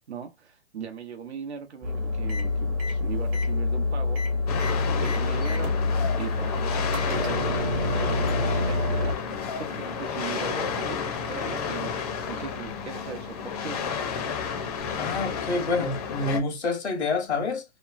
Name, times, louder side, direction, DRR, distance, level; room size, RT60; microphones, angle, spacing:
voice 1, 0.1-4.2 4.9-5.8 6.1-11.9 12.2-13.8, right 7 dB, 85° right, 0.8 m, -39 dB
sound 1, 1.8-9.1, left 3 dB, 20° right, 0.6 m, -26 dB
sound 2, 4.5-16.4, left 6 dB, 35° left, 0.5 m, -31 dB
voice 2, 15.0-17.6, left 3 dB, 90° left, 1.0 m, -27 dB
2.9 x 2.0 x 2.4 m
hypercardioid pair, 145°, 32 cm